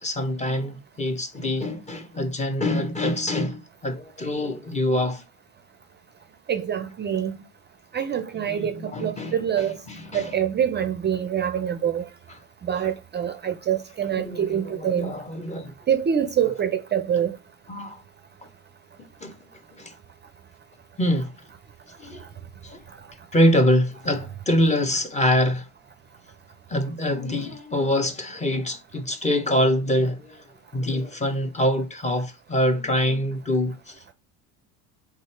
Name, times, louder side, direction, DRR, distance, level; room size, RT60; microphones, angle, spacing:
voice 1, 0.0-5.2 8.3-10.4 14.2-15.7 17.7-18.0 19.2-19.3 19.8-19.9 21.0-21.3 22.0-22.2 22.6-22.8 23.3-25.6 26.7-30.4 30.7-33.9, left 1 dB, 20° left, 0.9 m, -25 dB
voice 2, 6.5-7.3 7.9-9.8 10.1-12.0 12.7-15.1 15.9-17.3, right 9 dB, 30° right, 0.5 m, -25 dB
3.5 x 2.8 x 4.4 m
supercardioid pair, 95°, 39 cm